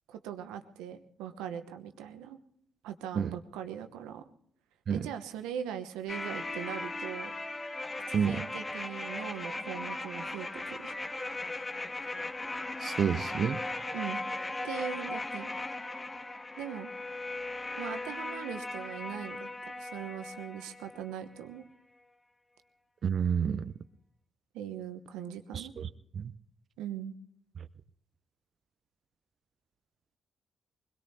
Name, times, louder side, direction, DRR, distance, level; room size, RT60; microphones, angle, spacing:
voice 1, 0.1-2.4 2.8-4.3 4.9-7.3 8.1-10.9 13.9-14.2 14.6-15.5 16.6-16.9 17.8-21.6 24.5-25.7 26.8-27.1, right 9 dB, 75° right, 8 dB, 1.0 m, -40 dB
sound 1, 6.1-21.1 21.4-21.5, left 2 dB, 25° left, 1.4 m, -38 dB
voice 2, 12.8-13.6 23.0-23.7 25.5-25.9 26.1-26.3, right 7 dB, 55° right, 14 dB, 0.5 m, -29 dB
22.5 x 21.0 x 2.8 m, 0.69 s
hypercardioid pair, 40°, 0 cm